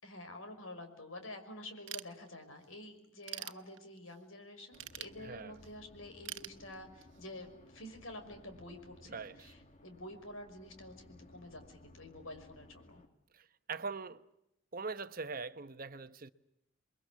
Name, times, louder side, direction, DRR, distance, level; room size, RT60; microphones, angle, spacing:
voice 1, 0.0-13.0, left 1 dB, 85° left, 5.7 m, -49 dB
Ratchet pawl / Tools, 1.9-2.7 3.0-4.2 4.7-5.7 6.3-7.2, right 13 dB, 70° right, 1.2 m, -45 dB
sound 1, 4.7-13.1, left 1 dB, 35° left, 2.0 m, -59 dB
voice 2, 5.2-5.6 9.1-9.5 13.3-14.2 14.7-16.3, right 4 dB, 45° right, 0.9 m, -42 dB
29.5 x 22.5 x 8.4 m
head